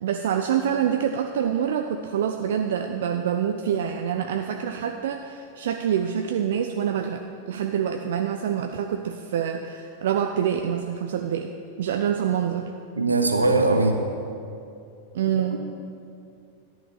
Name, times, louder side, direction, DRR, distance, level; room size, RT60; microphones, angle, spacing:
voice 1, 0.0-11.5 11.8-12.7 15.1-15.6, right 8 dB, 60° right, 5 dB, 0.6 m, -26 dB
voice 2, 13.0-14.1 15.5-15.6, right 3 dB, 80° right, 5 dB, 1.2 m, -20 dB
13.5 x 11.0 x 5.8 m, 2.5 s
figure-of-eight pair, 90°, 0 cm